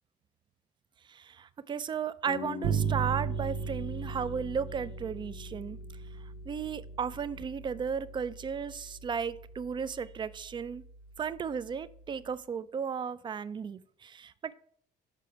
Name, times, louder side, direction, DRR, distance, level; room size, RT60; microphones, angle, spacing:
voice 1, 1.1-5.8 6.5-10.8 11.2-14.5, right 6 dB, 30° right, 0.4 m, -35 dB
sound 1, 2.3-8.0, left 9 dB, 60° left, 0.7 m, -46 dB
Bass guitar, 2.6-12.3, right 7 dB, 75° right, 0.6 m, -38 dB
6.8 x 5.1 x 4.7 m
cardioid pair, 110°, 17 cm